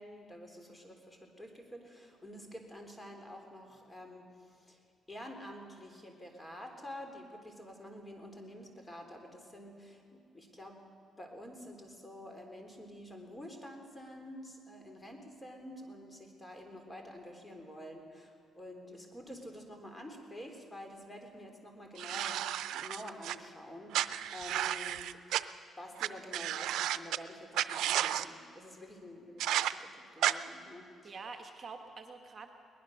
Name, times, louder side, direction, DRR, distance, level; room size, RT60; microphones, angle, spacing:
voice 1, 0.0-4.8 5.1-10.8 11.2-25.1 25.8-31.1, left 1 dB, 15° left, 4 dB, 3.7 m, -48 dB
sound 1, 22.0-23.4 23.9-25.4 26.0-26.1 26.3-27.2 27.5-28.3 29.4-29.7 30.2-30.3, right 12 dB, 85° right, 0.6 m, -32 dB
voice 2, 31.0-32.5, right 4 dB, 40° right, 4 dB, 1.6 m, -47 dB
22.5 x 19.5 x 6.6 m, 2.4 s
cardioid pair, 90°, 0 cm